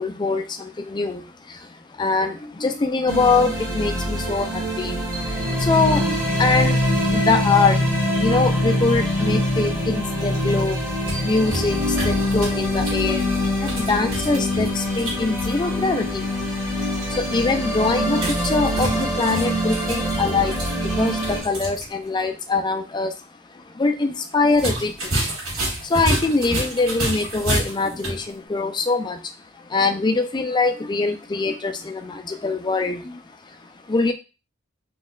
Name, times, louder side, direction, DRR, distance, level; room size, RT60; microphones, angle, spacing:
voice 1, 0.0-7.8 8.2-10.8 11.2-13.3 13.6-16.3 17.1-23.2 23.5-25.2 25.8-34.1, left 3 dB, 20° left, 6 dB, 0.4 m, -23 dB
sound 1, 3.1-21.4, left 1 dB, 15° right, 1.3 m, -24 dB
sound 2, 10.8-15.5 18.1-21.9 22.2-22.3 24.5-28.2, right 1 dB, 70° right, 1.9 m, -29 dB
4.2 x 3.0 x 2.3 m, 0.30 s
head